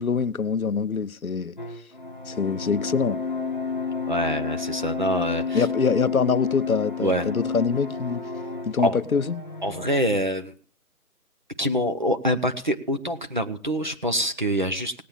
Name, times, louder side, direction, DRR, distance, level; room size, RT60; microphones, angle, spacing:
voice 1, 0.0-1.6 2.3-3.2 5.5-8.2 8.7-9.4, left 5 dB, 65° left, 0.8 m, -24 dB
sound 1, 1.6-10.0, left 5 dB, 30° left, 1.0 m, -31 dB
voice 2, 4.1-5.7 7.0-7.2 8.8-9.0 9.6-10.5 11.6-15.0, equal, 30° right, 0.9 m, -25 dB
18.5 x 8.5 x 7.3 m
figure-of-eight pair, 170°, 46 cm